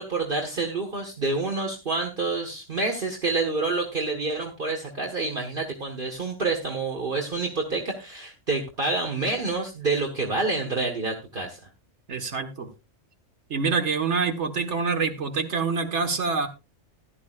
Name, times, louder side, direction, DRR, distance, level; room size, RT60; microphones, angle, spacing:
voice 1, 0.0-11.6, right 3 dB, 45° right, 1 dB, 1.7 m, -28 dB
voice 2, 12.1-12.7 13.5-16.5, right 4 dB, 70° right, 8 dB, 1.8 m, -26 dB
15.5 x 11.0 x 2.4 m, 0.27 s
omnidirectional pair, 1.3 m